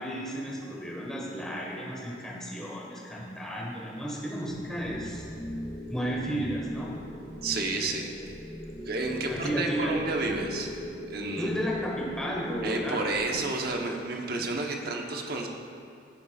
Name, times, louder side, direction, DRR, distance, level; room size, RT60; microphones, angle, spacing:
voice 1, 0.0-5.2 5.9-6.9 9.3-9.9 11.4-13.0, equal, 5° left, -5 dB, 1.8 m, -33 dB
sound 1, 4.5-13.3, left 1 dB, 40° left, 1.9 m, -40 dB
voice 2, 7.4-8.1 8.9-10.7 11.1-11.5 12.6-15.5, right 2 dB, 60° right, 1 dB, 1.0 m, -30 dB
15.5 x 6.9 x 2.4 m, 2.4 s
head